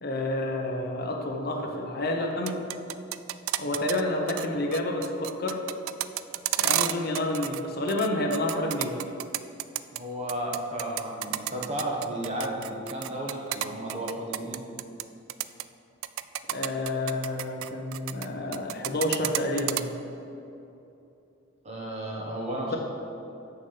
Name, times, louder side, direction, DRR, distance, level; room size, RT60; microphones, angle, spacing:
voice 1, 0.0-2.6 3.6-5.6 6.6-8.9 16.5-19.9, left 1 dB, 50° left, 2 dB, 0.9 m, -29 dB
sound 1, 2.3-4.0 4.3-4.5 4.7-7.6 7.9-10.0 10.3-15.0 15.3-15.6 16.0-18.3 18.5-19.8, right 14 dB, 80° right, 0.3 m, -30 dB
voice 2, 9.9-14.6 21.6-22.8, right 1 dB, 35° right, -2 dB, 1.3 m, -33 dB
7.1 x 6.6 x 5.7 m, 2.8 s
head